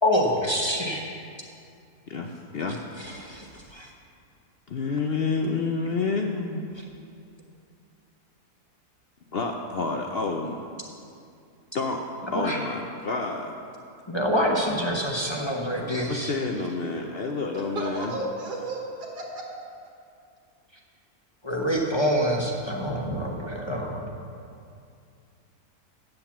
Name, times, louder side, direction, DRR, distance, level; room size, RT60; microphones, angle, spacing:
voice 1, 0.0-1.1 3.0-3.4 3.7-3.9 12.3-12.6 14.1-16.3 21.4-24.0, equal, 20° left, -1 dB, 0.8 m, -26 dB
voice 2, 2.1-2.8 3.2-3.5 4.7-6.7 9.3-10.6 11.7-12.0 12.3-13.5 15.7-18.1, left 4 dB, 65° left, 3 dB, 0.6 m, -29 dB
voice 3, 17.5-19.4 19.8-19.9, right 2 dB, 80° right, -2 dB, 2.1 m, -33 dB
8.9 x 8.0 x 7.2 m, 2.4 s
omnidirectional pair, 1.8 m